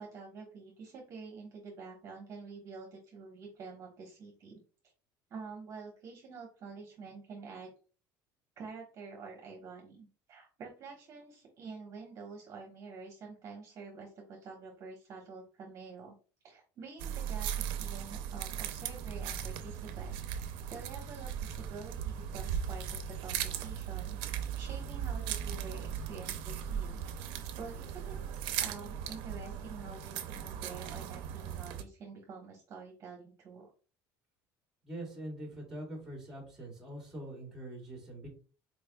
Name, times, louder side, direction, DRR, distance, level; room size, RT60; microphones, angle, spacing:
voice 1, 0.0-4.6 5.3-7.7 8.6-16.1 16.4-20.2 20.7-28.1 28.6-33.7, right 4 dB, 40° right, 0 dB, 1.1 m, -48 dB
sound 1, 17.0-31.8, right 9 dB, 75° right, 0.5 m, -38 dB
voice 2, 34.9-38.3, right 1 dB, 5° right, -1 dB, 1.9 m, -43 dB
4.3 x 3.3 x 2.2 m, 0.37 s
cardioid pair, 145°, 8 cm